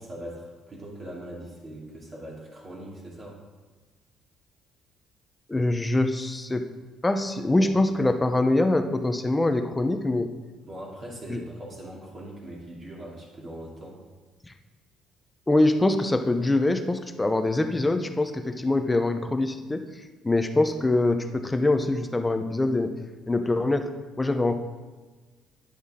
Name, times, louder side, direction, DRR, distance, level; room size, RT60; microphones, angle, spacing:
voice 1, 0.0-3.4 7.6-7.7 10.6-14.0, right 1 dB, 30° right, -4 dB, 2.8 m, -41 dB
voice 2, 5.5-6.6 7.0-10.3 11.3-11.4 15.5-19.9 20.2-22.9 23.3-24.6, left 2 dB, 10° left, 7 dB, 0.7 m, -24 dB
10.0 x 10.0 x 3.7 m, 1.3 s
cardioid pair, 140°, 0 cm